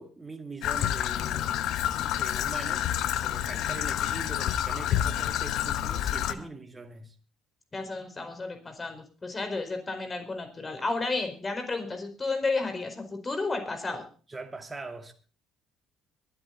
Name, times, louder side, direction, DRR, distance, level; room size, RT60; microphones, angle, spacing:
voice 1, 0.0-1.5 2.0-7.2 14.3-15.1, right 3 dB, 20° right, 2.2 m, -42 dB
Traffic noise roadway noise / Trickle dribble, 0.6-6.3, left 11 dB, 65° left, 0.8 m, -28 dB
voice 2, 7.7-14.0, left 3 dB, 30° left, 4.8 m, -32 dB
22.5 x 9.2 x 4.1 m
hypercardioid pair, 55°, 0 cm